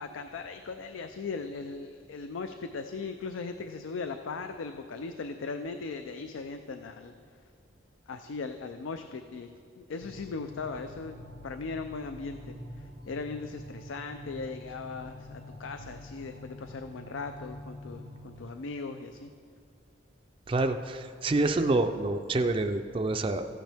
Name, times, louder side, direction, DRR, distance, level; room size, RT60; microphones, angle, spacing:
voice 1, 0.0-7.1 8.1-9.5 9.8-11.2 11.4-12.5 13.1-19.3, left 4 dB, 80° left, 8 dB, 0.4 m, -38 dB
sound 1, 10.0-18.5, left 1 dB, 45° left, 0.8 m, -46 dB
voice 2, 20.5-23.5, right 2 dB, 25° right, 7 dB, 0.3 m, -27 dB
14.5 x 9.0 x 3.4 m, 2.3 s
head